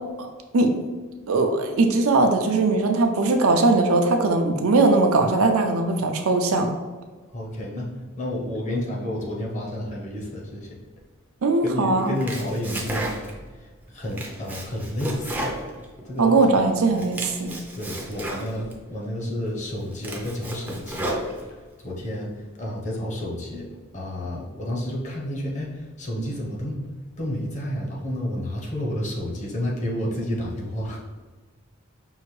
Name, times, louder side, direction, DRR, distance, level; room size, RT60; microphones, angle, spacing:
voice 1, 0.5-0.9 1.3-6.7 11.4-12.1 16.2-17.5 26.2-26.3, right 3 dB, 80° right, 4 dB, 0.5 m, -20 dB
voice 2, 7.3-7.9 8.2-10.7 11.6-13.1 13.9-15.5 16.0-16.6 17.8-21.1 21.8-22.3 22.5-23.7 23.9-26.8 27.2-31.0, left 1 dB, 35° left, -2 dB, 0.8 m, -30 dB
Domestic sounds home sounds, 12.0-13.5 13.9-16.4 16.8-18.8 19.3-19.4 19.8-21.8, right 1 dB, 10° right, 0.5 m, -33 dB
5.5 x 2.5 x 3.2 m, 1.4 s
head